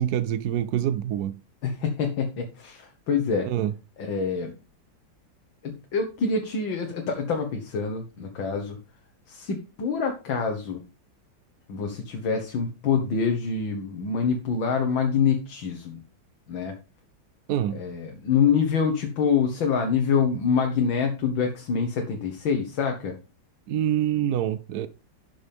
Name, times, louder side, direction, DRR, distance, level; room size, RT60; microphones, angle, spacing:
voice 1, 0.0-1.4 3.4-3.7 17.5-17.8 23.7-24.9, right 11 dB, 70° right, 1.0 m, -26 dB
voice 2, 1.6-3.5 4.0-4.5 5.6-8.8 9.3-10.8 11.7-16.0 16.5-16.8 17.7-23.2, left 6 dB, 75° left, 2.1 m, -26 dB
12.0 x 7.4 x 3.5 m
omnidirectional pair, 2.1 m